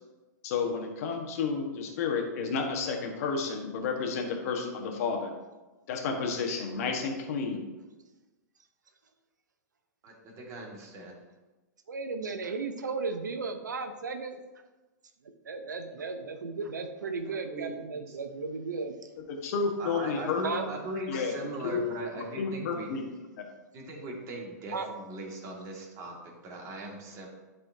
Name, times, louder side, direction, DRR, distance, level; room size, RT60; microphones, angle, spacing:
voice 1, 0.4-5.3 5.9-7.7 19.3-20.4 21.1-21.3 21.6-21.8 22.4-23.0 23.4-23.5, left 5 dB, 55° left, 2 dB, 1.4 m, -31 dB
voice 2, 10.0-11.1 17.3-18.1 19.8-22.9 23.7-27.3, right 1 dB, 30° right, -1 dB, 2.0 m, -39 dB
voice 3, 11.9-14.4 15.4-18.9 20.4-20.7 24.7-24.9, right 4 dB, 90° right, 7 dB, 0.8 m, -35 dB
11.5 x 4.4 x 2.7 m, 1.2 s
hypercardioid pair, 125°, 10 cm